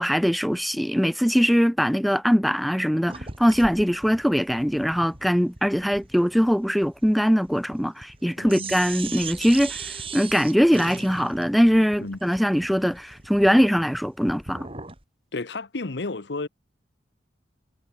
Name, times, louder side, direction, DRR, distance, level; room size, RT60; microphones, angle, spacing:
voice 1, 0.0-14.7, equal, ahead, 0.5 m, -22 dB
sound 1, 3.1-8.2 8.5-15.0, right 5 dB, 30° right, 5.0 m, -39 dB
voice 2, 8.4-8.7 12.0-12.2 15.3-16.5, left 3 dB, 75° left, 1.0 m, -32 dB
head